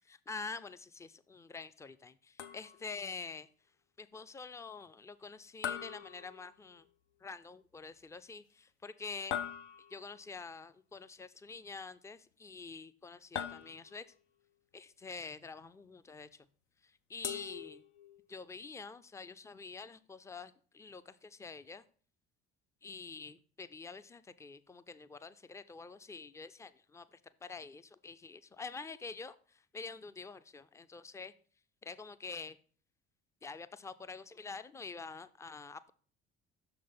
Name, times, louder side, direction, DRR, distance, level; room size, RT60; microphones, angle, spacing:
voice 1, 0.0-3.5 4.0-6.9 7.2-9.3 9.9-14.1 14.7-16.5 16.8-17.8 18.3-21.8 22.8-31.3 31.8-32.6 33.4-35.9, left 4 dB, 10° left, 13 dB, 0.3 m, -47 dB
sound 1, 2.4-3.0 5.6-6.9 9.3-10.2 13.3-14.2 17.2-18.3, left 9 dB, 85° left, 0.5 m, -42 dB
6.3 x 3.9 x 5.1 m, 0.43 s
hypercardioid pair, 60°, 34 cm